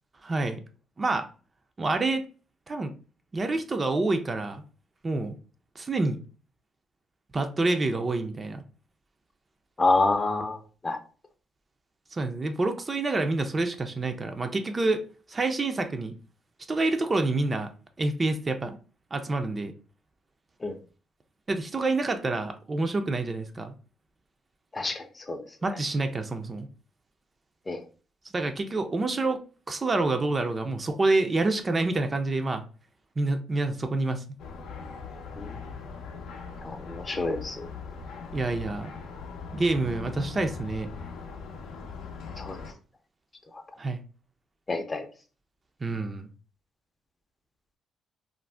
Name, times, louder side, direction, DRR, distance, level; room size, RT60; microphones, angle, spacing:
voice 1, 0.2-0.6 1.0-1.3 1.8-2.2 2.7-2.9 3.3-4.6 5.0-5.3 5.8-6.2 7.3-8.6 12.1-15.0 15.3-16.1 16.7-17.7 18.0-18.8 19.1-19.7 21.5-23.7 25.6-26.7 28.3-29.4 29.7-32.6 33.2-34.2 38.3-38.9 39.5-40.9 43.8-44.0 45.8-46.3, right 2 dB, 30° right, 6 dB, 0.4 m, -27 dB
voice 2, 9.8-11.0 20.6-20.7 24.7-25.4 27.7-27.8 35.4-35.5 36.6-37.7 42.4-42.6 44.7-45.0, left 3 dB, 25° left, 7 dB, 0.5 m, -28 dB
sound 1, 34.4-42.7, left 5 dB, 80° left, 0.5 m, -40 dB
2.5 x 2.0 x 3.2 m, 0.37 s
cardioid pair, 90°, 0 cm